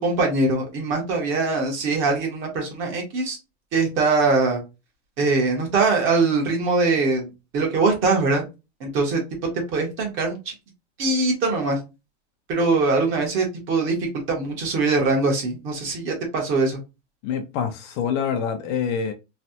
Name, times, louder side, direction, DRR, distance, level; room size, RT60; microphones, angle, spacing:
voice 1, 0.0-3.4 3.7-4.6 5.2-8.4 8.8-9.2 9.7-10.5 11.0-11.8 12.5-13.9 14.3-16.8, right 3 dB, 35° right, 1.3 m, -22 dB
voice 2, 17.2-19.1, left 7 dB, 45° left, 0.6 m, -26 dB
3.2 x 2.3 x 2.7 m
supercardioid pair, 160°, 34 cm